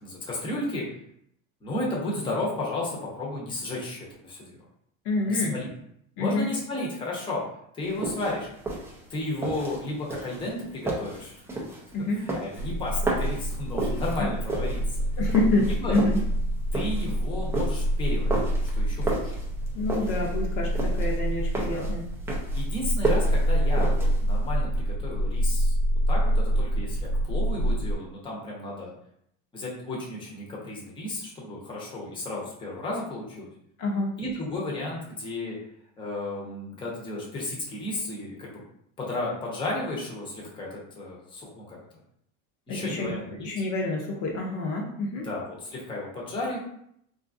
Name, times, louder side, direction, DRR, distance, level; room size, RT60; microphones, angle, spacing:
voice 1, 0.0-0.9 1.6-4.6 5.2-5.7 6.2-7.5 7.7-8.5 9.1-11.4 12.2-15.0 15.7-15.9 16.7-19.3 21.7-21.9 22.5-25.8 26.1-28.9 29.5-33.5 34.2-35.6 36.0-38.5 39.0-41.8 42.7-43.5 45.2-46.6, left 2 dB, 10° left, -4 dB, 0.7 m, -33 dB
voice 2, 5.0-5.5 6.2-6.5 11.9-12.2 15.2-16.2 19.7-22.0 33.8-34.1 42.7-43.1 43.4-45.3, left 2 dB, 50° left, -1 dB, 0.7 m, -27 dB
sound 1, 7.9-24.5, right 2 dB, 5° right, 0.3 m, -33 dB
sound 2, 12.6-27.9, equal, 80° right, 0.8 m, -26 dB
3.7 x 2.4 x 2.5 m, 0.72 s
supercardioid pair, 140°, 41 cm